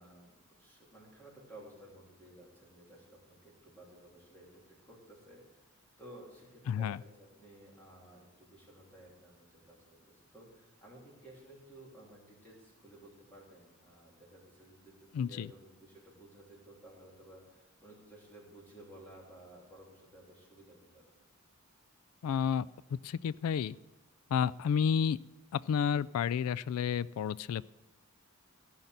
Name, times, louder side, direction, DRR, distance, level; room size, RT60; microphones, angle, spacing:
voice 1, 0.0-21.1, right 1 dB, 10° left, -4 dB, 3.2 m, -55 dB
voice 2, 6.7-7.0 15.1-15.5 22.2-23.8 24.3-25.2 25.5-27.6, left 7 dB, 80° left, 18 dB, 0.3 m, -31 dB
15.0 x 5.8 x 7.9 m, 1.1 s
head